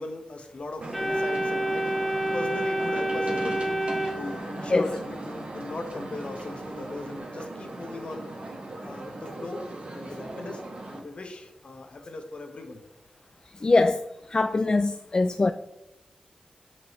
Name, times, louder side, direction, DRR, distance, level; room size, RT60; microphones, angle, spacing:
voice 1, 0.0-2.0 2.3-3.7 4.1-8.3 8.8-9.6 9.9-12.8, left 2 dB, 55° left, 1.0 m, -38 dB
sound 1, 0.8-11.0, right 2 dB, 60° right, 1.3 m, -38 dB
Organ, 0.9-4.9, right 1 dB, ahead, 1.2 m, -28 dB
voice 2, 13.6-14.0 14.3-15.5, left 3 dB, 40° left, 0.3 m, -22 dB
6.1 x 6.0 x 3.0 m
wide cardioid pair, 70°, 2 cm